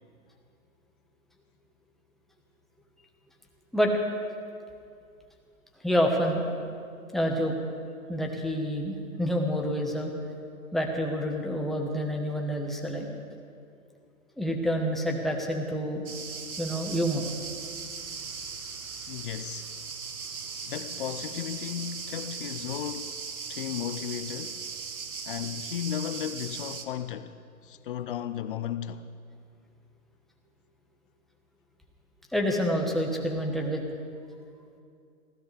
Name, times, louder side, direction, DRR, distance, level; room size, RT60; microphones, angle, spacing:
voice 1, 5.8-6.4 7.1-7.5 8.1-10.1 10.7-13.1 14.4-16.0 16.6-17.2 32.3-33.8, equal, ahead, 1.3 m, -28 dB
sound 1, 16.1-26.9, right 5 dB, 80° right, 1.6 m, -38 dB
voice 2, 19.1-19.7 20.6-23.2 23.5-24.7 25.3-27.4 27.6-29.1, left 10 dB, 40° left, 0.6 m, -35 dB
23.5 x 16.0 x 3.4 m
hypercardioid pair, 135°, 42 cm